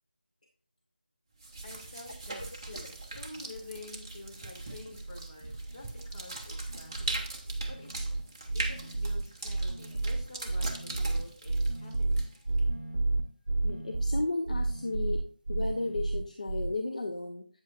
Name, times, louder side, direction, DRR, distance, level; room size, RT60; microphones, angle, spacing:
sound 1, 1.4-12.6, right 2 dB, 25° right, 0.9 m, -41 dB
voice 1, 1.6-8.0 8.5-12.6, left 2 dB, 25° left, -4 dB, 2.4 m, -49 dB
sound 2, 3.9-4.2 4.5-5.2 5.5-6.2 6.5-16.7, right 2 dB, 55° right, 1.0 m, -32 dB
voice 2, 13.6-15.2 15.5-17.5, left 2 dB, 50° left, 4 dB, 0.8 m, -34 dB
8.7 x 7.8 x 2.5 m, 0.42 s
figure-of-eight pair, 165°, 5 cm